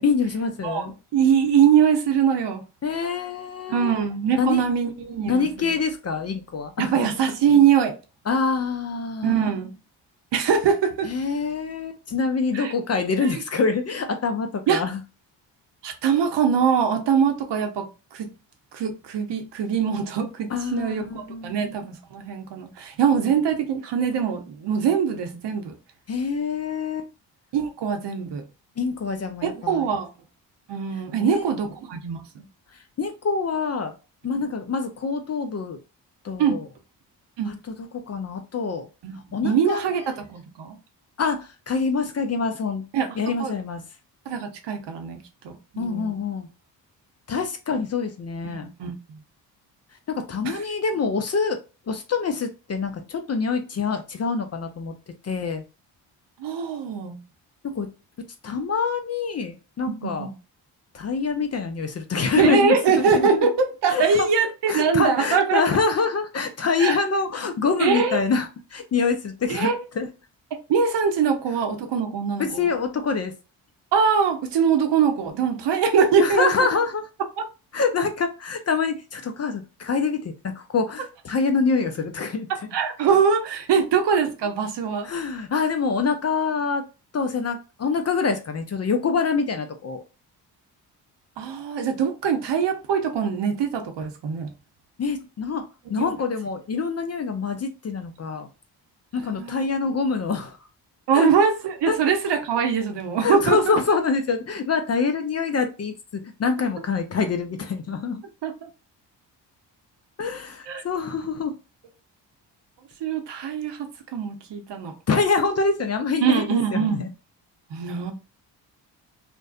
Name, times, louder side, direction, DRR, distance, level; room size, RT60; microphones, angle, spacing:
voice 1, 0.0-0.9 2.8-4.0 4.4-4.6 5.3-6.9 8.3-9.5 11.0-15.0 20.5-21.6 26.1-27.1 28.8-29.9 31.2-31.4 33.0-33.9 34.2-35.8 36.2-36.6 37.5-37.6 38.1-38.9 39.3-40.0 41.2-42.8 43.2-43.8 45.8-46.5 47.3-48.7 50.1-51.6 51.9-54.9 55.2-55.6 57.6-57.9 58.4-60.3 60.9-63.5 63.9-64.3 64.7-70.1 72.4-73.3 76.2-77.1 77.7-82.5 85.0-86.8 87.1-90.0 95.0-95.6 95.9-98.5 99.1-100.6 101.1-101.3 101.9-102.0 103.2-108.2 110.2-111.5 115.1-117.1, left 5 dB, 35° left, 0.5 m, -25 dB
voice 2, 1.1-2.6 3.7-5.7 6.8-8.0 9.2-9.7 10.3-11.1 12.5-12.7 13.2-13.4 14.7-14.8 15.8-18.3 18.7-25.8 27.5-28.4 29.4-30.1 30.7-32.4 36.4-36.6 37.4-37.5 39.0-40.8 42.9-43.5 44.3-45.2 45.4-46.1 48.4-49.2 50.4-50.6 56.4-57.2 59.9-60.3 62.4-65.6 66.8-67.0 67.8-68.2 69.5-69.8 70.7-72.6 73.9-76.5 82.7-85.1 91.4-94.5 96.0-96.1 99.4-99.7 101.1-103.8 108.4-108.6 110.7-110.8 113.0-114.9 116.2-117.1 117.7-118.1, right 7 dB, 60° right, 0.8 m, -23 dB
2.5 x 2.1 x 2.3 m
hypercardioid pair, 50°, 48 cm